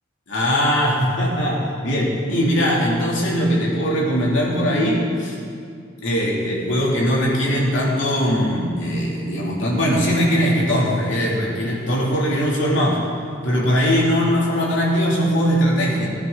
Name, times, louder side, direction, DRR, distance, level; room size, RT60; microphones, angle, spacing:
voice 1, 0.3-5.4 6.0-13.0 13.4-16.1, equal, 75° left, -4 dB, 3.0 m, -20 dB
16.0 x 10.5 x 4.0 m, 2.2 s
head